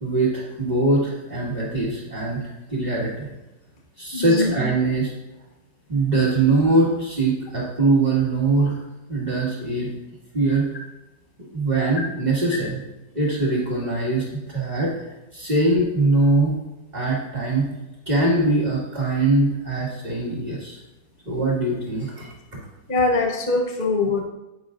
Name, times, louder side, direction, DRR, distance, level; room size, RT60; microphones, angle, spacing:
voice 1, 0.0-3.3 4.0-5.1 5.9-8.8 9.1-9.9 10.3-10.6 11.5-12.8 13.1-14.9 15.3-16.5 16.9-17.7 18.1-20.8 21.3-22.3, right 2 dB, 25° right, -8 dB, 1.9 m, -22 dB
voice 2, 4.1-4.5 22.9-24.2, left 3 dB, 35° left, 1 dB, 0.9 m, -22 dB
10.0 x 8.9 x 2.6 m, 0.99 s
omnidirectional pair, 2.0 m